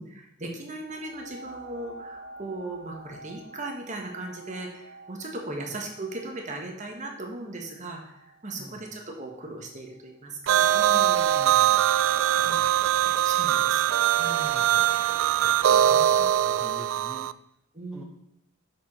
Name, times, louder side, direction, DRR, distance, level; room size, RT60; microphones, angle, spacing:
voice 1, 0.0-11.3 12.4-13.8 14.2-14.6 15.8-16.1 17.7-18.0, right 2 dB, 40° right, 1 dB, 1.4 m, -38 dB
sound 1, 0.9-10.1 10.8-10.9, right 2 dB, 35° left, 1.3 m, -49 dB
voice 2, 5.5-5.8 8.6-8.9 11.4-11.9 12.4-13.1 14.5-14.9 15.4-17.3 17.9-18.0, equal, 5° right, -1 dB, 0.6 m, -47 dB
sound 2, 10.5-17.3, right 11 dB, 75° right, 0.3 m, -22 dB
7.2 x 5.0 x 5.5 m, 0.79 s
head